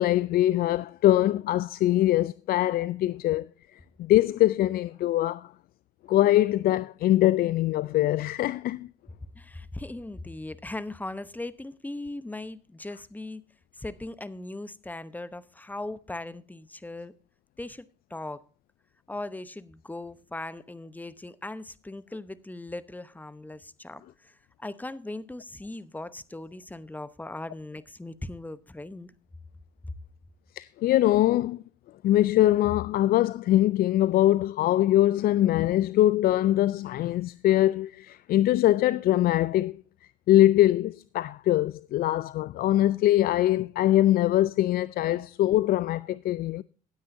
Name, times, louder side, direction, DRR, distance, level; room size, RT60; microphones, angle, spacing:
voice 1, 0.0-5.5 6.1-8.9 30.6-31.6 32.0-39.8 40.3-46.6, left 14 dB, 50° left, 0.4 m, -23 dB
voice 2, 9.3-13.4 13.7-17.1 17.6-18.4 19.1-29.1, left 2 dB, 10° left, 0.8 m, -39 dB
16.5 x 9.4 x 2.6 m
hypercardioid pair, 60°, 19 cm